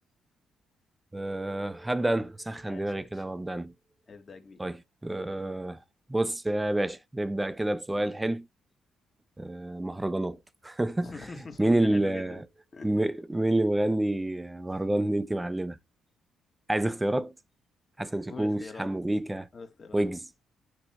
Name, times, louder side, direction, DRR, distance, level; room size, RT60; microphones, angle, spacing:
voice 1, 1.1-3.7 4.6-5.8 6.1-8.5 9.4-10.4 10.6-11.2 11.6-12.4 12.8-15.8 16.7-17.3 18.0-19.5 19.9-20.2, right 1 dB, 10° right, 0.8 m, -28 dB
voice 2, 2.6-3.2 4.1-4.6 11.0-12.4 12.7-12.9 18.3-18.9 19.5-20.0, left 4 dB, 40° left, 1.8 m, -44 dB
9.7 x 3.3 x 4.4 m
cardioid pair, 90°, 0 cm